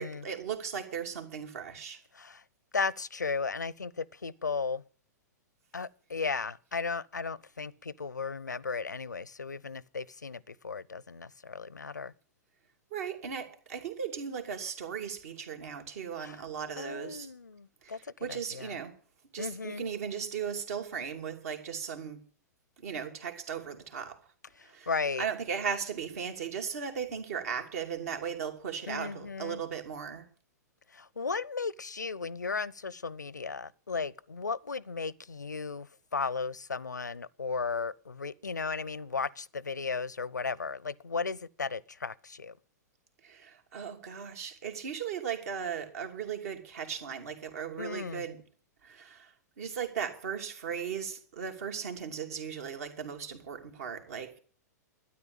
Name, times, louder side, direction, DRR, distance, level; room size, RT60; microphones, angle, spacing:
voice 1, 0.0-2.0 12.9-17.3 17.8-18.9 19.3-22.2 22.8-24.2 24.6-24.9 25.2-30.2 43.2-48.4 48.8-54.4, right 7 dB, 60° right, 2.8 m, -37 dB
voice 2, 2.7-4.8 5.7-12.1 16.2-16.4 16.8-18.0 18.3-18.7 19.4-19.8 24.9-25.3 28.9-29.6 30.9-42.5 47.8-48.2, left 4 dB, 85° left, 0.6 m, -35 dB
12.5 x 9.8 x 8.7 m
figure-of-eight pair, 100°, 9 cm